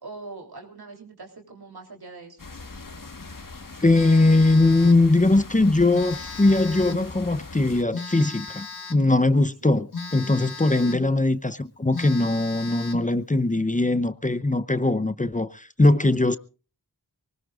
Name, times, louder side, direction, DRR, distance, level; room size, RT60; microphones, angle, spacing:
voice 1, 0.0-2.4 9.6-9.8 10.6-11.1, right 3 dB, 85° right, 3.5 m, -43 dB
sound 1, 2.4-7.8, left 3 dB, 60° left, 1.6 m, -40 dB
voice 2, 3.8-16.4, left 2 dB, 20° left, 0.8 m, -21 dB
Telephone, 3.9-5.1 5.9-7.1 7.9-9.1 9.9-11.1 11.5-11.6 11.9-13.1, left 4 dB, 80° left, 1.4 m, -36 dB
23.5 x 19.0 x 2.5 m
wide cardioid pair, 45°, 37 cm